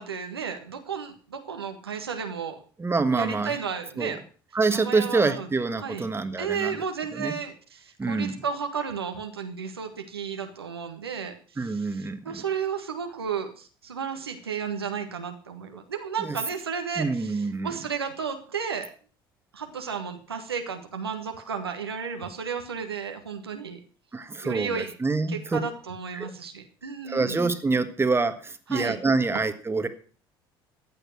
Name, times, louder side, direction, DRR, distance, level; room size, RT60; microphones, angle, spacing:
voice 1, 0.0-2.6 3.1-4.2 4.7-5.5 5.8-6.0 6.4-18.9 19.5-23.8 24.4-24.9 25.3-27.5 28.7-29.0, right 6 dB, 85° right, 5 dB, 1.5 m, -33 dB
voice 2, 2.8-3.5 4.0-4.2 4.5-6.8 7.2-7.3 8.0-8.3 11.6-12.4 16.2-16.4 17.0-17.7 24.1-25.6 26.1-26.3 26.8-29.9, right 3 dB, 20° right, 9 dB, 1.7 m, -26 dB
15.0 x 9.0 x 6.0 m, 0.41 s
figure-of-eight pair, 60°, 13 cm